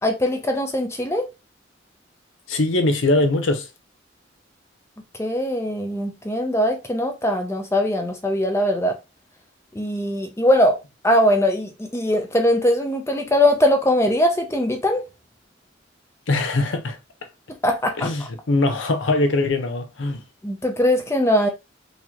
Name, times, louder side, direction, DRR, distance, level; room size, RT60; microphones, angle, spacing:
voice 1, 0.0-1.3 5.2-9.0 9.7-15.0 17.6-18.1 20.4-21.5, left 1 dB, 15° left, 0.5 m, -21 dB
voice 2, 2.5-3.7 16.3-17.0 18.0-20.2, left 2 dB, 85° left, 0.8 m, -21 dB
3.9 x 3.0 x 2.9 m
head